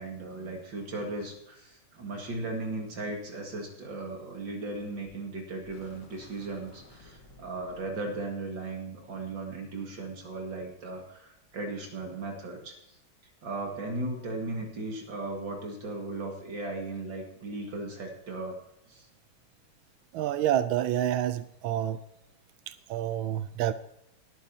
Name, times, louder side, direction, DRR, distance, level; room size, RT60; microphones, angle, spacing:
voice 1, 0.0-13.0 13.4-18.6 18.9-19.1, right 2 dB, 70° right, 1 dB, 2.6 m, -37 dB
sound 1, 4.7-5.2 5.6-8.0, left 3 dB, 60° left, 2.3 m, -54 dB
voice 2, 20.1-22.0 22.7-23.7, right 11 dB, 85° right, 13 dB, 1.4 m, -28 dB
18.5 x 9.4 x 2.8 m, 0.82 s
omnidirectional pair, 2.2 m